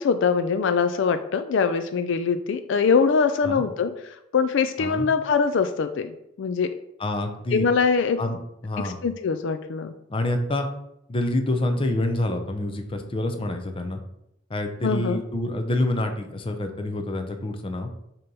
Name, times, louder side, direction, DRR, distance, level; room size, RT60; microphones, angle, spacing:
voice 1, 0.0-6.1 6.4-6.7 7.5-8.2 8.8-9.9 14.8-15.2, left 5 dB, 65° left, 9 dB, 0.4 m, -23 dB
voice 2, 4.8-5.1 7.0-7.7 8.2-9.0 10.1-10.7 11.1-14.0 14.5-17.9, left 1 dB, 30° left, 5 dB, 0.7 m, -27 dB
6.5 x 3.0 x 5.3 m, 0.82 s
head